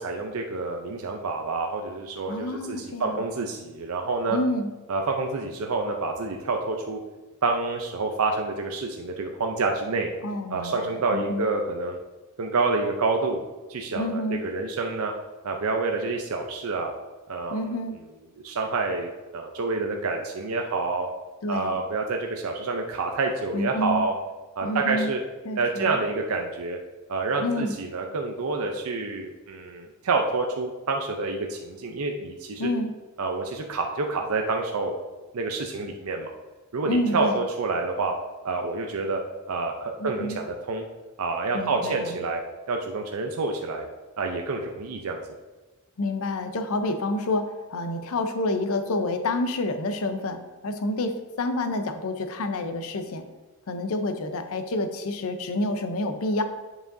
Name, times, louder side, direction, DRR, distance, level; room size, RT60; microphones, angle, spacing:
voice 1, 0.0-4.4 4.9-7.0 7.4-10.1 10.5-12.0 12.4-13.4 13.7-15.1 15.4-16.9 17.3-17.6 18.4-21.1 21.5-24.1 24.6-25.2 25.6-26.8 27.1-32.7 33.2-35.0 35.3-36.3 36.7-38.1 38.4-39.2 39.5-40.8 41.2-42.4 42.7-43.9 44.2-45.2, right 3 dB, 75° right, 3 dB, 0.5 m, -28 dB
voice 2, 2.3-3.2 4.3-4.7 10.2-11.4 13.9-14.4 17.5-18.0 21.4-21.8 23.5-24.0 24.6-25.1 25.4-26.0 27.4-27.7 32.6-32.9 36.9-37.4 40.0-40.4 41.5-42.1 46.0-53.3 53.7-56.4, left 2 dB, 70° left, 8 dB, 0.6 m, -28 dB
7.6 x 4.9 x 2.6 m, 1.2 s
head